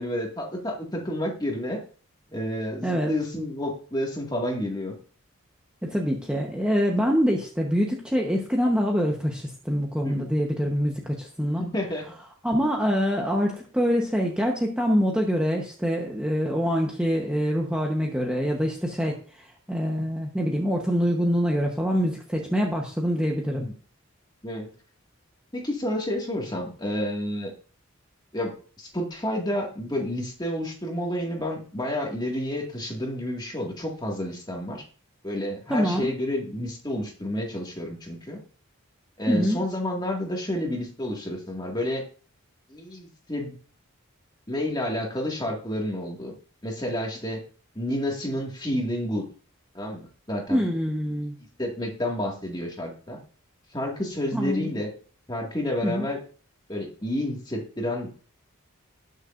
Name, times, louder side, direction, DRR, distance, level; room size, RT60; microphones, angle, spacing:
voice 1, 0.0-1.8 2.3-5.0 8.6-8.7 10.0-10.3 11.6-12.1 23.5-23.7 24.4-24.7 25.5-27.5 28.3-34.8 35.2-38.4 39.2-42.0 42.7-43.5 44.5-46.3 46.6-47.4 47.8-49.3 49.7-50.6 51.6-53.2 53.7-54.9 55.3-56.2 56.7-58.1, left 1 dB, 20° left, 0 dB, 2.0 m, -30 dB
voice 2, 5.8-11.6 12.4-23.7 35.7-36.1 39.3-39.6 50.5-51.3 54.3-54.7 55.8-56.1, equal, 5° right, -1 dB, 1.0 m, -25 dB
19.0 x 6.5 x 2.6 m, 0.41 s
head